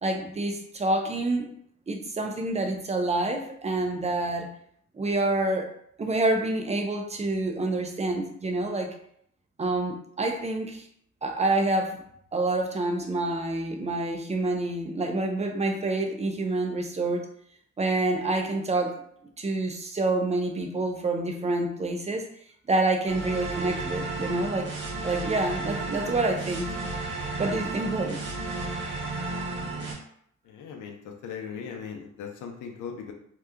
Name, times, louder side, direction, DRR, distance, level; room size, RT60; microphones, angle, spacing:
voice 1, 0.0-1.5 1.9-4.5 4.9-5.7 6.0-8.9 9.6-10.8 11.2-12.0 12.3-17.3 17.8-19.1 19.4-22.3 22.7-24.7 25.0-26.7 27.4-28.2, right 2 dB, 20° right, 3 dB, 0.6 m, -27 dB
sound 1, 23.1-29.9, right 3 dB, 40° right, 1.1 m, -33 dB
voice 2, 30.4-33.1, left 6 dB, 85° left, 3 dB, 0.7 m, -39 dB
2.9 x 2.3 x 3.4 m, 0.68 s
cardioid pair, 90°, 30 cm